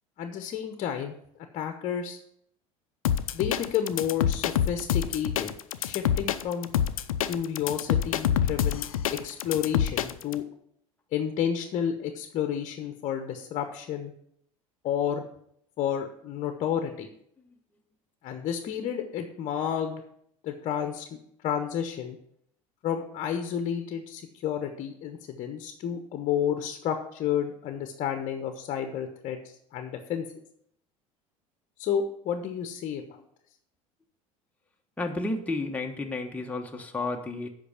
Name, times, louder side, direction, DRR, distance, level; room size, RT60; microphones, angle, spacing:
voice 1, 0.2-1.1 1.5-2.2 3.3-6.7 7.3-8.9 9.1-10.4 11.1-14.1 14.8-15.2 15.8-17.1 18.2-20.0 20.4-21.0 21.4-22.2 22.8-30.2 31.8-33.2, left 8 dB, 45° left, 7 dB, 1.0 m, -31 dB
sound 1, 3.0-10.4, left 10 dB, 80° left, 0.5 m, -26 dB
voice 2, 35.0-37.5, left 2 dB, 10° left, 2 dB, 1.2 m, -31 dB
8.3 x 5.3 x 7.2 m, 0.71 s
hypercardioid pair, 70°, 18 cm